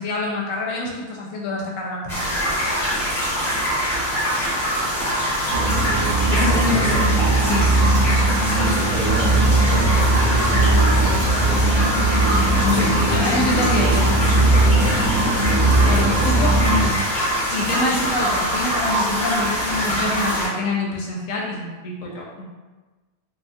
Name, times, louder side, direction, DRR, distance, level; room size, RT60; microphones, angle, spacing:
voice 1, 0.0-2.5 6.3-7.0 7.4-7.7 12.6-14.0 15.8-17.0 17.5-22.4, left 2 dB, 70° left, -2 dB, 0.9 m, -26 dB
sound 1, 2.1-20.5, equal, ahead, 1.0 m, -23 dB
sound 2, 5.5-16.9, right 2 dB, 60° right, 0.3 m, -19 dB
voice 2, 6.3-7.0 7.7-8.0 8.5-12.0 12.7-15.2, equal, 80° right, -3 dB, 1.1 m, -30 dB
sound 3, 9.0-16.1, equal, 25° left, 0.7 m, -29 dB
3.3 x 2.4 x 2.6 m, 1.3 s
omnidirectional pair, 1.6 m